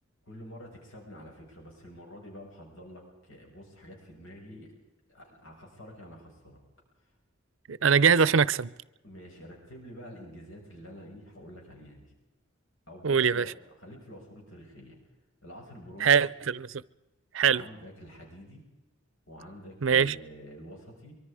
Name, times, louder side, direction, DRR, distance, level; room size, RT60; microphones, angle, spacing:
voice 1, 0.3-4.7 5.1-6.6 9.0-12.1 12.9-13.5 13.8-15.0 15.4-16.2 17.4-18.6 19.3-21.2, equal, 85° left, 6.0 m, -47 dB
voice 2, 7.7-8.7 13.0-13.5 16.0-16.8 17.3-17.6 19.8-20.2, right 6 dB, 75° right, 0.6 m, -22 dB
24.0 x 23.5 x 4.9 m
head